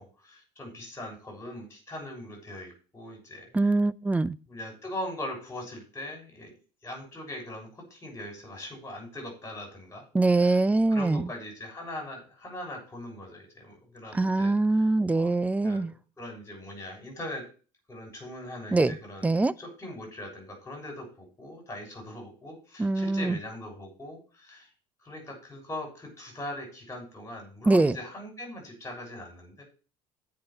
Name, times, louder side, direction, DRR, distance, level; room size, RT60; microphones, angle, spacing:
voice 1, 0.0-3.7 4.5-6.5 6.8-10.6 10.9-14.9 15.1-15.3 15.6-17.4 17.9-24.7 25.0-29.6, left 1 dB, 20° left, 6.9 m, -41 dB
voice 2, 3.5-4.4 10.1-11.3 14.1-15.9 18.7-19.0 19.2-19.5 22.8-23.4 27.7-28.0, right 2 dB, 10° right, 0.6 m, -23 dB
8.8 x 5.8 x 7.7 m
supercardioid pair, 95°, 13 cm